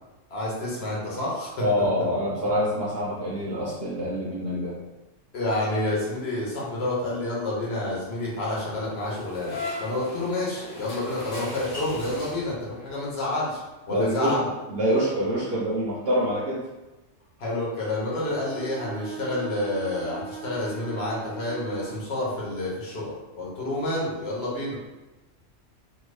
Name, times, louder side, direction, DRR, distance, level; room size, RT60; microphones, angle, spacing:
voice 1, 0.3-1.9 5.3-13.6 13.9-14.5 17.4-24.8, left 1 dB, 55° left, -5 dB, 1.2 m, -29 dB
voice 2, 1.6-4.8 13.9-14.4 14.7-16.7, equal, 60° right, -6 dB, 0.8 m, -26 dB
sound 1, 8.9-12.8, left 1 dB, 75° left, 1.3 m, -37 dB
Bowed string instrument, 18.3-22.1, right 5 dB, 15° right, 0.4 m, -40 dB
2.7 x 2.7 x 3.2 m, 1.1 s
omnidirectional pair, 1.3 m